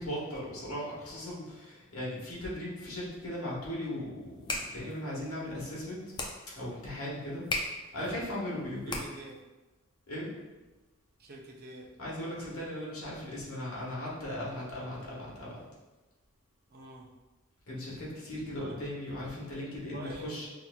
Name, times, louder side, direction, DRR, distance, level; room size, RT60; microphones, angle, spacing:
voice 1, 0.0-6.0 6.5-7.4 7.7-9.0 10.1-10.3 12.0-15.6 17.7-20.5, left 1 dB, 75° left, -6 dB, 1.4 m, -38 dB
sound 1, 4.2-9.4, left 2 dB, 20° left, 0.4 m, -39 dB
voice 2, 8.8-9.3 11.2-11.9 16.7-17.1 18.6-18.8 19.9-20.5, right 2 dB, 45° right, -1 dB, 0.6 m, -46 dB
5.6 x 2.7 x 2.3 m, 1.1 s
head